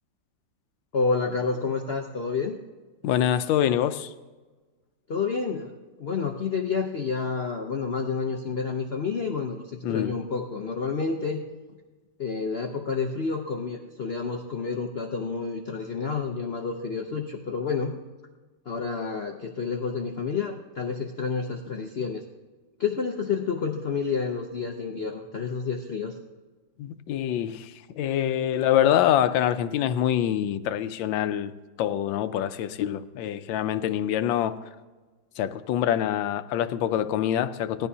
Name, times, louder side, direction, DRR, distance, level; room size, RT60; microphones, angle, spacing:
voice 1, 0.9-2.6 5.1-11.4 12.2-18.0 18.7-22.2 22.8-26.2, left 5 dB, 65° left, 2 dB, 0.6 m, -29 dB
voice 2, 3.0-4.1 9.8-10.1 26.8-34.6 35.4-37.9, left 10 dB, 85° left, 12 dB, 1.3 m, -25 dB
18.5 x 12.5 x 2.8 m, 1.3 s
omnidirectional pair, 2.0 m